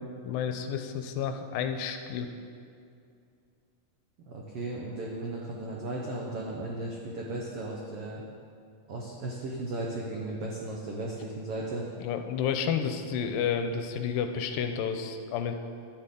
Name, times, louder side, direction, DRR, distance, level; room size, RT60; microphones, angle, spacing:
voice 1, 0.0-2.3 12.0-15.5, left 7 dB, 90° left, 7 dB, 2.4 m, -31 dB
voice 2, 4.3-8.2 8.9-11.9 13.2-13.3, right 2 dB, 80° right, -2 dB, 1.3 m, -36 dB
11.0 x 9.9 x 3.7 m, 2.4 s
omnidirectional pair, 4.0 m